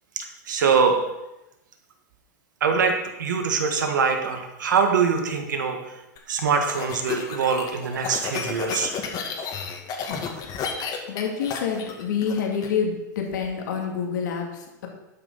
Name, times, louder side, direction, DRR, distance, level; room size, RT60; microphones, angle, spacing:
voice 1, 0.1-1.0 2.6-5.8 6.3-8.9, right 5 dB, 85° right, 4 dB, 1.7 m, -23 dB
sound 1, 6.2-12.7, left 6 dB, 40° left, 2.1 m, -32 dB
voice 2, 11.1-14.9, left 6 dB, 75° left, 1 dB, 2.4 m, -28 dB
11.5 x 6.0 x 5.6 m, 0.93 s
hypercardioid pair, 110°, 10 cm